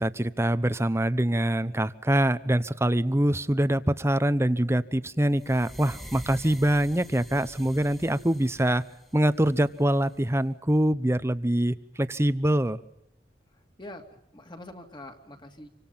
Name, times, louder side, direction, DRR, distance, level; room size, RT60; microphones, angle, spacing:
voice 1, 0.0-8.8 9.1-12.8, right 1 dB, 15° right, 14 dB, 0.9 m, -24 dB
sound 1, 5.3-10.3, equal, ahead, 1.7 m, -46 dB
voice 2, 13.5-15.7, left 1 dB, 25° left, 4 dB, 2.7 m, -45 dB
27.5 x 25.0 x 5.7 m, 0.83 s
head